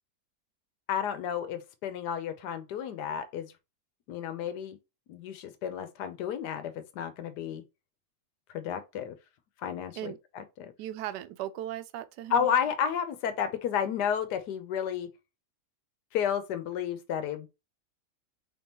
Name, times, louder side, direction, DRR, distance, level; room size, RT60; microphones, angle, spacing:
voice 1, 0.9-3.5 4.1-4.8 5.1-7.6 8.5-9.2 9.6-10.7 12.3-15.1 16.1-17.5, left 8 dB, 80° left, 1.4 m, -32 dB
voice 2, 10.8-12.5, right 12 dB, 80° right, 1.2 m, -37 dB
4.6 x 3.6 x 2.8 m
omnidirectional pair, 1.8 m